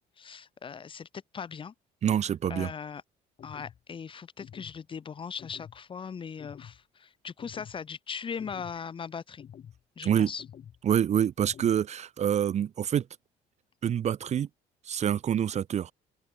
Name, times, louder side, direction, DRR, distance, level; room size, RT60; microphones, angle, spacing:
voice 1, 0.2-1.1 1.3-1.7 2.5-3.0 3.4-9.4 10.0-10.4, left 6 dB, 30° left, 0.8 m, -39 dB
voice 2, 2.0-2.7 10.0-10.3 10.8-13.1 13.8-14.5 14.9-15.9, right 9 dB, 40° right, 0.6 m, -26 dB
sound 1, 3.4-3.8 4.4-4.8 5.4-5.8 6.4-6.8 7.4-7.8 8.4-8.8 9.4-9.8 10.4-10.8 11.4-11.8, left 9 dB, 45° left, 2.9 m, -48 dB
open air
cardioid pair, 110°, 17 cm